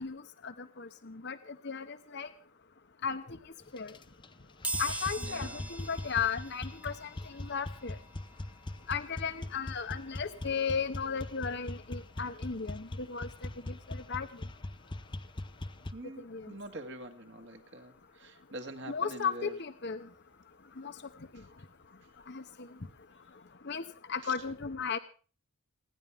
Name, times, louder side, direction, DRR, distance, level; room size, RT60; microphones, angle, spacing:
voice 1, 0.0-1.4 1.6-2.3 3.0-3.2 3.7-3.9 4.8-8.0 8.9-13.3 13.9-14.3 16.3-16.5 18.9-20.0 20.8-20.9 22.3-22.4 23.6-23.8 24.1-25.0, left 6 dB, 50° left, 8 dB, 0.9 m, -35 dB
sound 1, 3.8-4.3 4.6-15.9, left 1 dB, 20° left, 0.7 m, -41 dB
sound 2, 4.6-15.3 15.8-15.9 17.0-17.1 17.4-19.5 19.9-22.5 22.8-23.0 23.3-23.4, right 2 dB, 5° right, 0.9 m, -45 dB
voice 2, 5.2-5.7 15.9-19.6 24.2-24.3, right 1 dB, 55° right, 5 dB, 2.1 m, -45 dB
28.5 x 10.5 x 3.5 m, 0.37 s
head